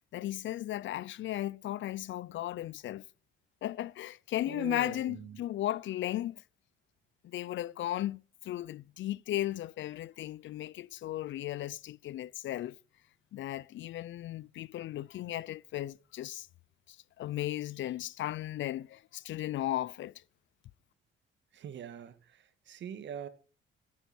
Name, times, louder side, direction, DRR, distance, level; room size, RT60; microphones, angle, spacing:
voice 1, 0.1-3.0 3.6-6.4 7.2-12.8 13.3-16.5 16.9-20.2, left 13 dB, 70° left, 0.6 m, -36 dB
voice 2, 4.5-5.4 21.5-23.3, right 9 dB, 65° right, 2.0 m, -43 dB
17.5 x 9.8 x 6.2 m
cardioid pair, 90°, 20 cm